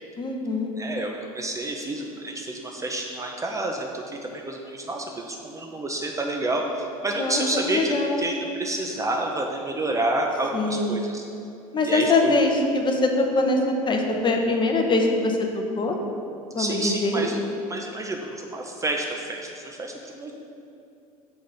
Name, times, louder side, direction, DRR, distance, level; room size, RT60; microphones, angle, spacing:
voice 1, 0.2-0.7 7.2-7.4 7.7-8.2 10.5-11.0 11.7-15.4 15.8-15.9 16.5-17.3, left 2 dB, 25° left, 3 dB, 0.7 m, -23 dB
voice 2, 0.8-11.2 11.9-12.4 16.6-17.4 17.7-20.3, right 2 dB, 15° right, 1 dB, 0.5 m, -29 dB
6.1 x 3.6 x 5.4 m, 2.6 s
figure-of-eight pair, 70°, 19 cm